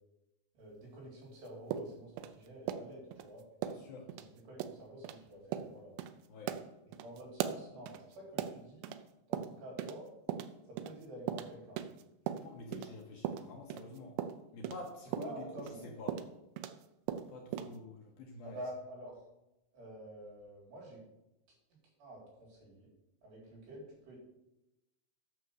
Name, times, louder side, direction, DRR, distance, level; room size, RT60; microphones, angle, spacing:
voice 1, 0.5-3.4 4.2-6.0 7.0-9.0 9.3-10.1 10.7-11.8 15.2-15.9 18.4-19.2 19.7-21.0 22.0-22.9 23.2-24.2, right 1 dB, 65° right, -4 dB, 6.1 m, -48 dB
sound 1, 1.7-3.3 3.6-3.8 4.1-4.3 4.6-4.8 5.0-5.2 5.5-5.7 6.0-6.1 6.5-9.0 9.3-10.0 10.3-12.9 13.3-16.8 17.1-17.8, right 10 dB, 80° right, 2.7 m, -39 dB
voice 2, 3.6-4.2 6.3-6.6 12.2-14.2 14.5-16.2 17.3-18.6, left 3 dB, 70° left, 0 dB, 2.5 m, -48 dB
9.3 x 6.7 x 6.5 m, 0.91 s
omnidirectional pair, 5.3 m